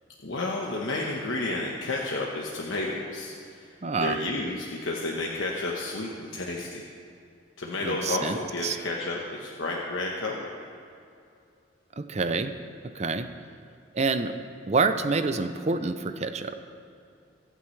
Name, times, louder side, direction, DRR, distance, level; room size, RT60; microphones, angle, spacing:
voice 1, 0.2-6.9 7.6-10.5, left 2 dB, 80° left, -2 dB, 1.1 m, -31 dB
voice 2, 3.8-4.2 7.8-8.8 12.0-12.5 12.9-13.3 13.9-14.4 14.7-16.6, right 4 dB, 35° right, 10 dB, 0.6 m, -27 dB
23.0 x 9.0 x 3.3 m, 2.5 s
head